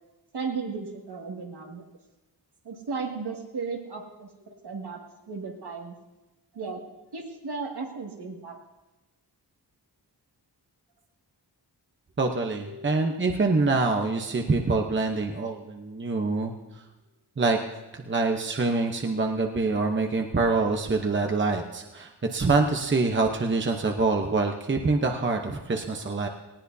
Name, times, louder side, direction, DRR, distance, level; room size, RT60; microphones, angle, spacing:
voice 1, 0.3-1.8 2.6-5.0 5.3-6.0 6.5-6.8 7.1-8.6 12.6-12.9, right 4 dB, 70° right, 0 dB, 2.2 m, -35 dB
voice 2, 12.2-16.5 17.4-17.6 17.9-26.3, right 3 dB, 30° right, 3 dB, 0.9 m, -25 dB
19.0 x 18.0 x 2.8 m, 1.1 s
wide cardioid pair, 135°, 41 cm